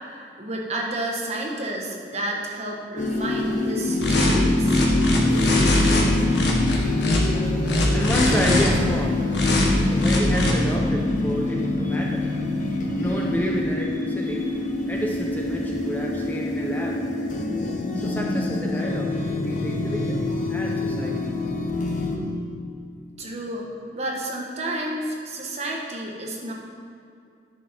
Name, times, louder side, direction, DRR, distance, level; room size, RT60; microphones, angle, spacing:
voice 1, 0.1-4.8 23.2-26.5, right 1 dB, 40° right, -1 dB, 1.4 m, -31 dB
sound 1, 3.0-22.2, left 2 dB, 45° left, 1.0 m, -25 dB
sound 2, 4.0-4.4 4.7-6.0 6.3-7.2 7.7-8.7 9.3-9.7 10.0-10.5, left 1 dB, 85° left, 1.6 m, -21 dB
voice 2, 7.3-17.5 17.9-21.5 22.2-22.3, equal, 10° left, -1 dB, 0.7 m, -30 dB
10.5 x 6.8 x 4.4 m, 2.4 s
head